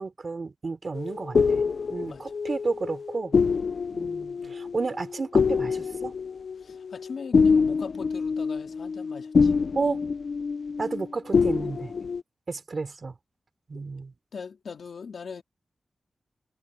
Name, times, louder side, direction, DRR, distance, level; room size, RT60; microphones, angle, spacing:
voice 1, 0.0-1.6 1.9-3.3 3.9-6.1 9.7-10.0 10.8-11.9 12.5-13.1 13.7-14.1, right 4 dB, 45° right, 3.6 m, -32 dB
sound 1, 0.9-11.1 11.3-12.2, left 5 dB, 70° left, 0.5 m, -25 dB
voice 2, 6.6-9.5 14.3-15.4, left 5 dB, 85° left, 2.3 m, -40 dB
wide cardioid pair, 120°, 0 cm